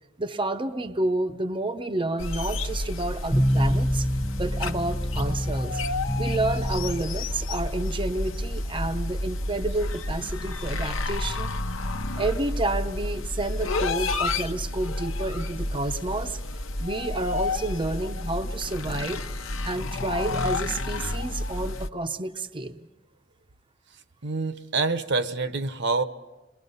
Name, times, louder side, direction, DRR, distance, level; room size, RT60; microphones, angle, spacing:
voice 1, 0.2-4.1 4.3-5.8 6.2-11.5 12.2-16.4 16.8-19.2 19.6-22.8, right 2 dB, 25° right, 5 dB, 0.7 m, -30 dB
sound 1, 2.2-21.9, left 2 dB, 75° left, 1.0 m, -30 dB
sound 2, 3.3-14.5, equal, 5° left, 0.9 m, -31 dB
voice 2, 24.2-26.0, right 3 dB, 60° right, 11 dB, 0.9 m, -26 dB
28.0 x 22.5 x 5.5 m, 1.1 s
head